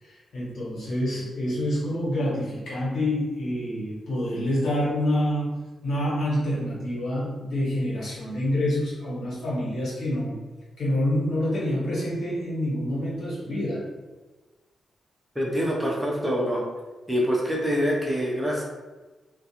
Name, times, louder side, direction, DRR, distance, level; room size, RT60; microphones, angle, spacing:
voice 1, 0.0-10.4 10.8-13.9, left 1 dB, 75° left, -8 dB, 1.3 m, -27 dB
voice 2, 15.3-16.7 17.1-18.6, equal, 10° right, -3 dB, 0.6 m, -25 dB
2.4 x 2.2 x 2.8 m, 1.2 s
cardioid pair, 80°, 0 cm